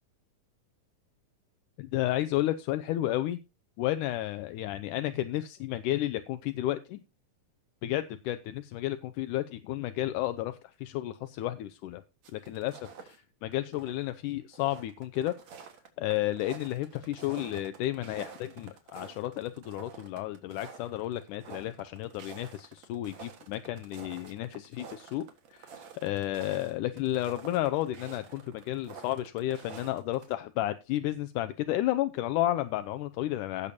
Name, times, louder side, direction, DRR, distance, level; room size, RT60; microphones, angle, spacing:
voice 1, 1.8-3.4 3.8-7.0 7.8-12.0 12.3-15.3 16.0-33.7, left 14 dB, 75° left, 11 dB, 2.0 m, -32 dB
sound 1, 12.2-13.2 13.5-14.1 14.4-30.3, right 6 dB, 55° right, 2.6 m, -48 dB
17.0 x 6.7 x 2.8 m, 0.27 s
omnidirectional pair, 4.1 m